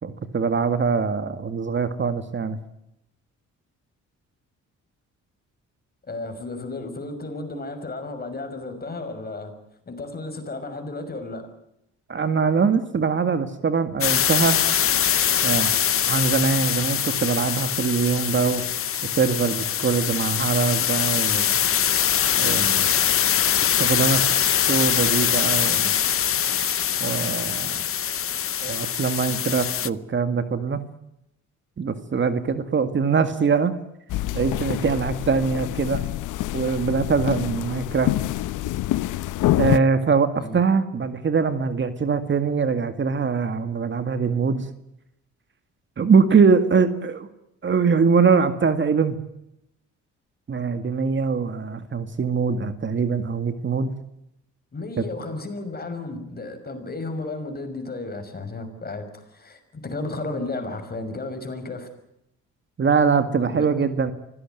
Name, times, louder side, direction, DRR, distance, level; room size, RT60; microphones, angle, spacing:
voice 1, 0.0-2.6 12.1-14.6 15.4-15.7 16.1-18.6 19.0-21.5 22.4-23.0 23.8-24.3 24.7-25.9 27.0-27.7 28.6-30.8 31.8-33.7 34.3-36.0 36.5-38.1 39.6-44.7 46.0-47.3 47.6-49.2 50.5-53.9 55.0-55.1 62.8-64.1, right 5 dB, 40° right, 10 dB, 2.1 m, -22 dB
voice 2, 6.0-9.5 9.9-11.5 40.4-40.6 54.7-61.9 63.5-63.7, left 2 dB, 30° left, 8 dB, 5.9 m, -33 dB
sound 1, 14.0-29.9, left 9 dB, 45° left, 0.9 m, -23 dB
sound 2, 34.1-39.8, left 15 dB, 85° left, 0.9 m, -26 dB
25.0 x 17.0 x 9.3 m, 0.83 s
cardioid pair, 90°, 30 cm